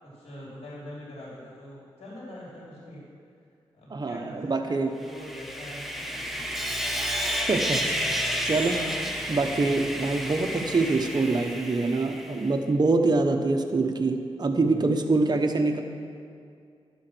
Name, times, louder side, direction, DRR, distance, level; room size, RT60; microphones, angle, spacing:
voice 1, 0.0-3.1 3.7-7.1 14.5-15.2, equal, 90° left, -6 dB, 3.0 m, -44 dB
voice 2, 3.9-5.0 7.5-7.9 8.4-8.8 9.3-15.8, right 3 dB, 40° right, 4 dB, 1.0 m, -25 dB
Sawing, 5.0-12.5, equal, ahead, 0.9 m, -31 dB
12.0 x 7.4 x 6.0 m, 2.4 s
wide cardioid pair, 85°, 10 cm